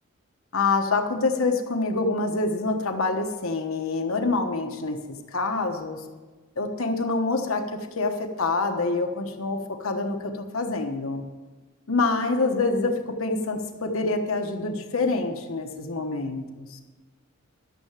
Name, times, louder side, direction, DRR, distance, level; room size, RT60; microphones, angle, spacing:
voice 1, 0.5-5.0 5.3-6.0 6.6-7.6 8.0-11.3 11.9-16.8, left 3 dB, 75° left, 5 dB, 1.3 m, -26 dB
12.5 x 6.8 x 7.5 m, 1.3 s
head